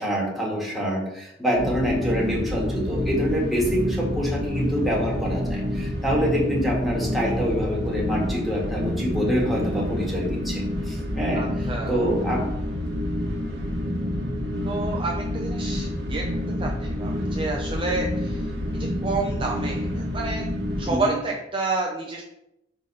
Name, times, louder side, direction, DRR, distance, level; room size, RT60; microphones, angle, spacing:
voice 1, 0.0-11.4 11.9-12.4 20.9-21.1, equal, ahead, -4 dB, 1.7 m, -26 dB
sound 1, 1.5-20.9, left 1 dB, 60° right, 1.3 m, -28 dB
voice 2, 11.3-12.0 14.6-16.2 16.6-18.5 19.0-20.4 20.8-22.2, right 3 dB, 30° right, -1 dB, 0.6 m, -29 dB
5.1 x 3.7 x 5.5 m, 0.84 s
head